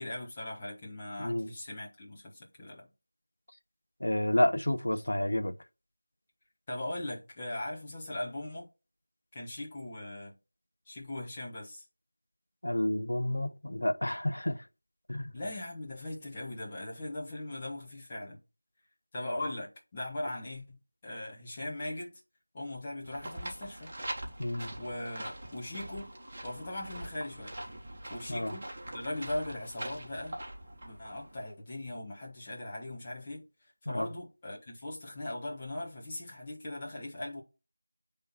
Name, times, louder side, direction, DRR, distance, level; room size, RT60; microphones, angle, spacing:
voice 1, 0.0-2.9 6.7-8.7 9.3-10.4 10.9-11.8 15.3-18.4 19.1-22.1 22.5-23.9 24.8-26.1 26.4-27.5 28.1-28.7 28.9-30.4 30.8-33.4 33.8-37.4, left 1 dB, 15° left, 1.4 m, -39 dB
voice 2, 4.0-5.5 12.6-14.6 15.1-15.3 24.4-24.7 28.3-28.5 33.9-34.1, left 1 dB, 70° left, 1.1 m, -30 dB
sound 1, 23.0-31.4, right 1 dB, 25° right, 1.4 m, -43 dB
7.6 x 3.5 x 4.1 m
figure-of-eight pair, 175°, 0 cm